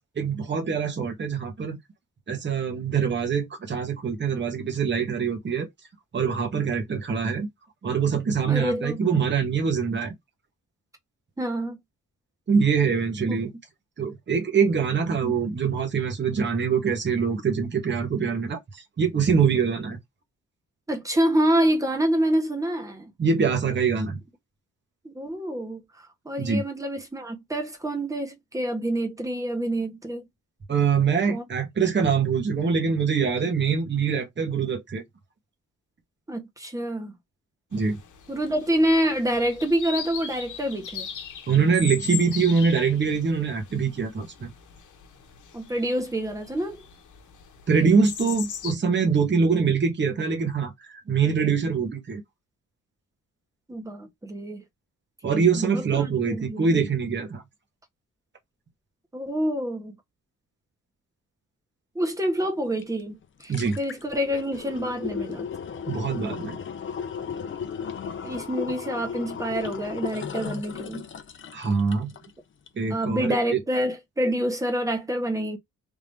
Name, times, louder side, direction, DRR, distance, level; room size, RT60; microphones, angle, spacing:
voice 1, 0.2-1.8 2.3-5.7 6.1-7.5 7.8-10.1 12.5-13.5 14.0-20.0 23.2-24.2 26.4-26.6 30.7-35.0 37.7-38.0 41.5-44.5 47.7-52.2 55.2-57.4 63.5-63.8 65.9-66.6 71.5-72.1 72.8-73.6, right 6 dB, 35° right, 1.3 m, -24 dB
voice 2, 8.5-9.0 11.4-11.8 13.3-13.4 15.2-15.3 20.9-23.1 25.0-25.8 26.2-30.2 31.3-31.4 36.3-37.1 38.3-41.1 45.5-46.8 53.7-54.6 55.6-56.7 59.1-59.9 61.9-65.5 68.2-71.0 72.9-75.6, right 1 dB, 10° right, 1.1 m, -27 dB
sound 1, 37.7-48.7, left 7 dB, 65° left, 1.0 m, -39 dB
sound 2, 62.8-62.9 63.2-72.3 72.7-72.8, left 7 dB, 40° left, 0.6 m, -35 dB
3.6 x 2.8 x 3.4 m
wide cardioid pair, 150°, 32 cm